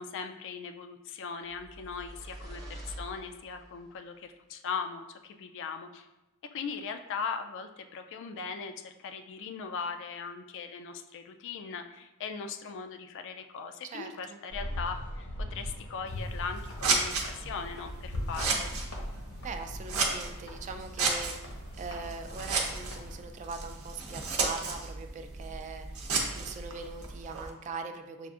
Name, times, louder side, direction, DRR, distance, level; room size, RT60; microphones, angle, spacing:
voice 1, 0.0-6.1 6.5-18.7, left 5 dB, 60° left, 7 dB, 0.3 m, -39 dB
sound 1, 1.5-3.9, right 1 dB, 15° right, 0.7 m, -45 dB
voice 2, 13.9-14.4 19.4-28.3, right 4 dB, 35° right, 6 dB, 0.3 m, -41 dB
sound 2, 14.5-23.2, left 1 dB, 80° left, 1.0 m, -41 dB
Scissors, 16.1-27.5, right 4 dB, 70° right, 0.7 m, -34 dB
6.9 x 2.5 x 2.4 m, 1.0 s
head